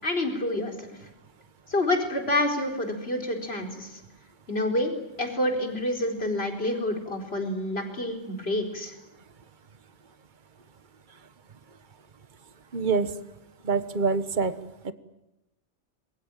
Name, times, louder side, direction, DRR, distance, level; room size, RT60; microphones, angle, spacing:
voice 1, 0.0-1.0 1.7-4.0 4.5-9.0, left 1 dB, 55° left, 3 dB, 4.7 m, -28 dB
voice 2, 12.7-13.1 13.6-14.5 14.8-14.9, right 4 dB, 40° right, 12 dB, 1.4 m, -25 dB
27.0 x 22.5 x 9.2 m, 0.92 s
omnidirectional pair, 1.2 m